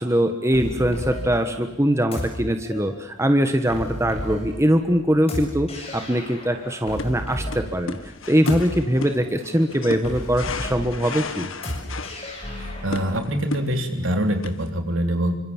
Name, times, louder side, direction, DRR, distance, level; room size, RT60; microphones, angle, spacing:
voice 1, 0.0-8.0 8.3-11.5, equal, 15° right, 6 dB, 1.4 m, -22 dB
sound 1, 0.5-13.2, equal, 30° left, 7.7 m, -34 dB
sound 2, 6.7-14.7, left 3 dB, 70° left, 1.8 m, -35 dB
voice 2, 12.5-15.4, equal, 70° right, 5 dB, 3.7 m, -24 dB
27.5 x 25.0 x 7.3 m, 0.84 s
head